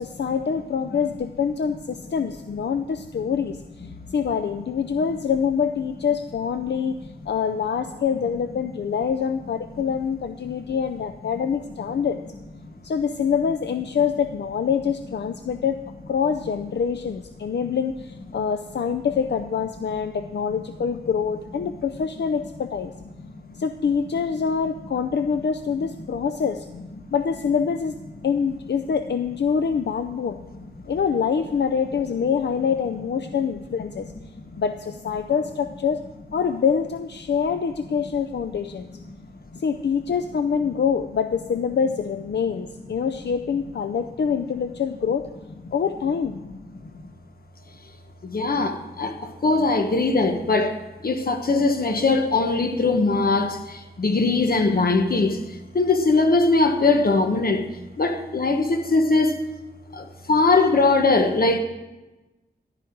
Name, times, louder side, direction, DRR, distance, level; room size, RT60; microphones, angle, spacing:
voice 1, 0.0-6.9 7.3-12.2 12.8-15.8 16.1-22.9 23.6-26.7 27.1-28.0 28.2-30.4 30.9-34.1 34.6-36.0 36.3-39.0 39.6-45.3 45.7-46.4, left 6 dB, 75° left, 8 dB, 0.5 m, -25 dB
voice 2, 48.2-50.8 51.0-55.4 55.7-57.7 58.0-59.4 59.9-61.6, left 3 dB, 55° left, 5 dB, 1.3 m, -21 dB
14.0 x 11.5 x 4.6 m, 1.1 s
wide cardioid pair, 105°, 18 cm